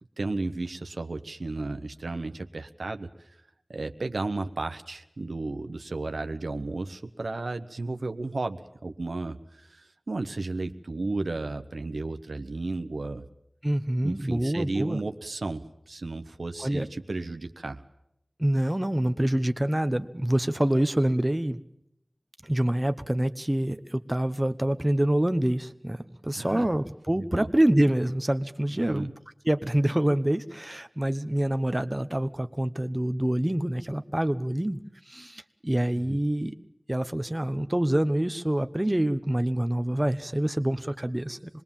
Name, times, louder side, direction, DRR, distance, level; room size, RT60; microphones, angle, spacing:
voice 1, 0.2-3.3 3.7-13.3 14.0-17.8 26.4-26.7 27.2-27.5 28.7-29.1 36.1-36.2, right 3 dB, 85° right, 7 dB, 1.0 m, -33 dB
voice 2, 13.6-15.0 16.6-16.9 18.4-21.6 22.4-29.1 29.4-34.8 35.1-36.5 36.9-41.4, right 1 dB, 20° right, 9 dB, 1.0 m, -26 dB
26.5 x 20.0 x 7.3 m, 0.80 s
wide cardioid pair, 40°, 0 cm